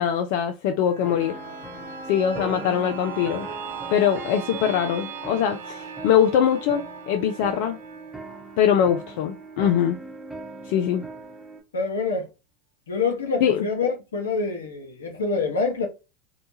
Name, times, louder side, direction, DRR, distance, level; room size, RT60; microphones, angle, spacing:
voice 1, 0.0-1.3 2.1-3.5 3.9-7.8 8.6-10.0 10.7-11.0 13.4-13.7, left 9 dB, 60° left, 0.4 m, -22 dB
sound 1, 0.8-10.4 10.8-10.9, right 8 dB, 75° right, 0.4 m, -40 dB
sound 2, 1.0-11.6, right 1 dB, ahead, 0.9 m, -40 dB
voice 2, 11.7-12.3 12.9-15.9, left 4 dB, 85° left, 0.8 m, -26 dB
2.8 x 2.3 x 2.6 m
hypercardioid pair, 90°, 0 cm